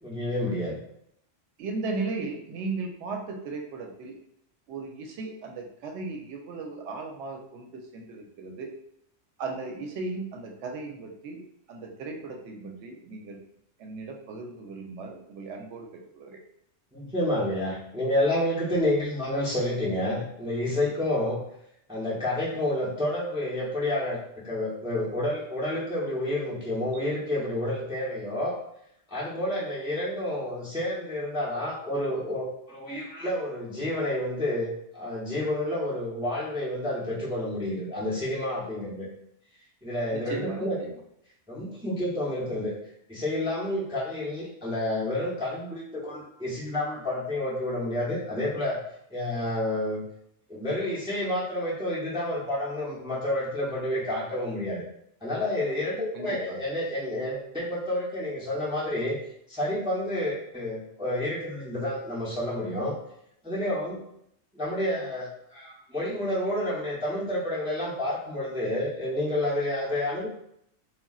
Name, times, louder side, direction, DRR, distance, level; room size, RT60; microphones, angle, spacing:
voice 1, 0.0-0.8 16.9-21.4 21.9-24.2 24.4-28.6 29.1-39.1 39.8-40.8 41.5-42.7 43.1-48.8 49.1-50.0 50.5-54.8 55.2-59.2 59.5-62.9 63.4-64.0 64.5-70.3, left 1 dB, 5° right, -6 dB, 0.4 m, -29 dB
voice 2, 1.6-4.2 4.7-8.7 9.4-13.4 13.8-16.4 40.1-40.9 56.1-56.6, right 3 dB, 75° right, 2 dB, 0.8 m, -36 dB
3.7 x 2.3 x 2.3 m, 0.75 s
omnidirectional pair, 1.2 m